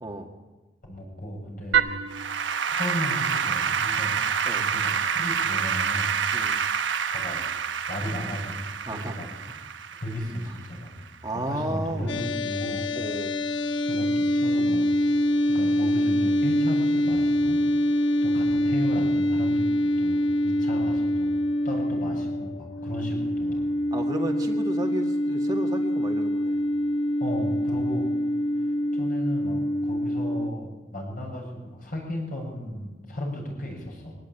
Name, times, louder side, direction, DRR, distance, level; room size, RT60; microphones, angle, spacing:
voice 1, 0.8-1.8 2.7-4.2 4.6-6.1 7.1-7.4 7.9-9.3 10.0-10.9 11.5-12.9 13.9-14.9 15.5-17.6 18.0-21.3 21.6-23.6 27.2-28.0 28.9-34.2, left 1 dB, 45° left, 0 dB, 7.5 m, -34 dB
Applause / Keyboard (musical), 1.7-11.1, right 7 dB, 90° right, 1.2 m, -27 dB
voice 2, 8.8-9.2 9.5-9.7 11.2-12.2 12.9-13.5 23.9-26.7, right 1 dB, 20° right, 2 dB, 1.7 m, -33 dB
sound 1, 12.1-30.5, left 1 dB, 85° left, 1.5 m, -25 dB
22.5 x 17.0 x 9.0 m, 1.2 s
head